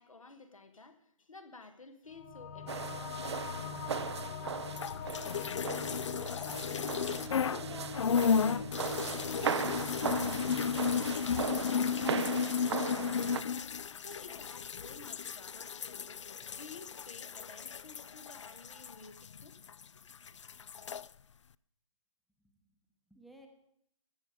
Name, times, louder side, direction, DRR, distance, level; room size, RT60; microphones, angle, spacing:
voice 1, 0.0-4.9 7.3-19.6, left 3 dB, 80° left, 1.5 m, -53 dB
sound 1, 2.1-13.0, left 5 dB, 30° left, 0.8 m, -43 dB
sound 2, 2.7-13.4, right 7 dB, 55° right, 0.5 m, -38 dB
sound 3, 4.7-7.6 7.9-19.8 20.1-21.1, left 6 dB, 65° left, 0.4 m, -34 dB
voice 2, 22.4-23.5, right 1 dB, ahead, 0.8 m, -59 dB
14.5 x 7.0 x 5.0 m
figure-of-eight pair, 140°, 17 cm